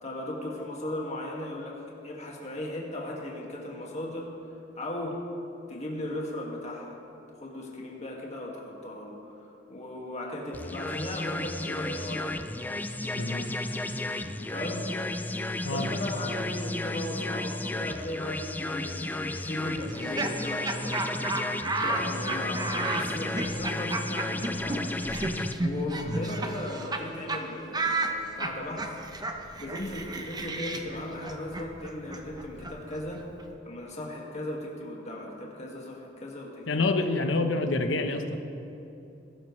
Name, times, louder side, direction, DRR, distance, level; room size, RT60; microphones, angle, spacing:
voice 1, 0.0-4.3 4.8-5.2 5.7-7.0 7.4-12.5 14.2-14.9 15.7-24.9 25.6-28.9 29.6-33.2 33.6-37.1, left 1 dB, 40° left, -2 dB, 2.0 m, -37 dB
sound 1, 10.5-25.5, left 2 dB, 10° left, 0.4 m, -33 dB
voice 2, 13.1-13.5 15.6-15.9 26.1-26.4 36.7-38.4, left 2 dB, 85° left, 6 dB, 1.0 m, -27 dB
Laughter, 19.9-27.0 27.3-27.4 27.7-33.5, right 2 dB, 20° right, 0.8 m, -33 dB
20.5 x 12.0 x 3.2 m, 2.9 s
head